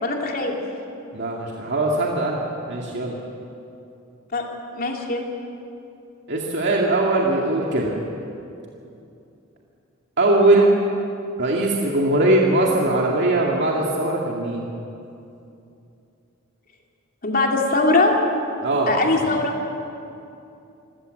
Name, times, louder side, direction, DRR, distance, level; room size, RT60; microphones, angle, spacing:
voice 1, 0.0-0.5 4.3-4.5 4.8-5.2 17.2-18.1 18.9-19.5, left 2 dB, 45° left, 0 dB, 2.9 m, -21 dB
voice 2, 1.1-2.4 2.7-3.2 6.3-7.9 10.2-10.7 11.4-14.7 18.6-18.9, right 2 dB, 55° right, -2 dB, 2.2 m, -20 dB
26.5 x 15.0 x 7.9 m, 2.7 s
head